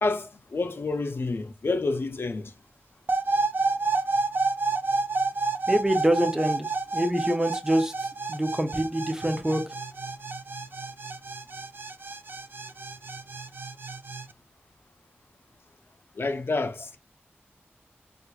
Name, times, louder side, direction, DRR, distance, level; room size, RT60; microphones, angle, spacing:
voice 1, 0.0-2.5 16.2-17.0, left 3 dB, 65° left, 0.5 m, -29 dB
sound 1, 3.1-14.2, right 3 dB, 55° right, 0.3 m, -29 dB
voice 2, 5.7-6.7 6.9-7.9 8.3-9.6, right 1 dB, 15° right, 0.6 m, -25 dB
4.4 x 2.5 x 2.3 m
wide cardioid pair, 70°, 4 cm